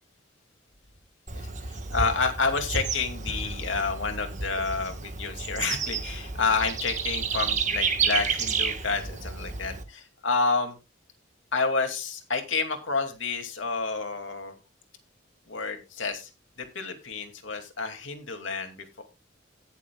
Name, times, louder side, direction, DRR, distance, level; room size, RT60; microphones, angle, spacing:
Bird / Insect, 1.3-9.8, right 5 dB, 40° right, 1.4 m, -31 dB
voice 1, 1.9-10.8 11.5-14.5 15.5-16.3 16.6-19.0, left 4 dB, 80° left, 5 dB, 2.5 m, -29 dB
18.0 x 7.1 x 2.4 m, 0.26 s
head